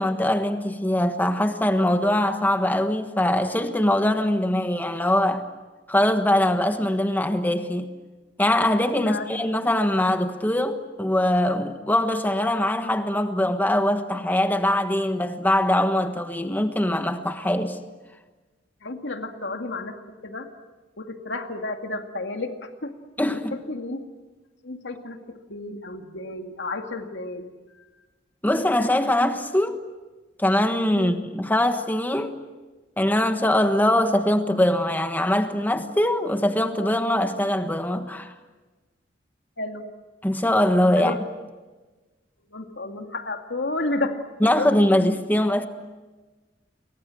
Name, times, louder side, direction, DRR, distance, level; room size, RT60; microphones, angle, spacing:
voice 1, 0.0-5.5 5.9-7.9 8.4-17.8 23.2-23.6 28.4-29.8 30.4-32.4 33.0-38.3 40.2-41.2 44.4-45.7, left 1 dB, 10° left, 1.4 m, -22 dB
voice 2, 18.8-19.9 20.2-20.5 21.0-23.0 23.7-24.0 24.6-27.9 30.9-31.2 33.9-34.0 39.6-39.9 41.0-41.2 42.5-44.1 44.4-44.7, left 2 dB, 80° left, 2.3 m, -32 dB
29.5 x 23.5 x 7.7 m
head